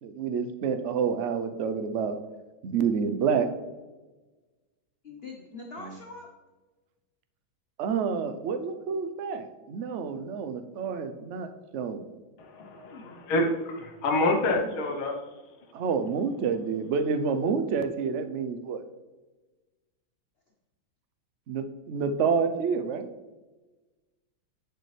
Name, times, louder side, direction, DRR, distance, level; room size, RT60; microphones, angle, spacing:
voice 1, 0.0-2.2 2.6-3.5 5.8-6.0 7.8-11.5 11.7-12.0 15.7-18.8 21.5-23.1, right 6 dB, 80° right, 8 dB, 0.6 m, -28 dB
voice 2, 5.0-6.3 12.9-13.2 14.5-14.8, left 3 dB, 45° left, 0 dB, 0.8 m, -43 dB
voice 3, 12.4-15.2, left 2 dB, 90° left, 3 dB, 1.9 m, -27 dB
10.5 x 6.7 x 3.3 m, 1.2 s
omnidirectional pair, 2.2 m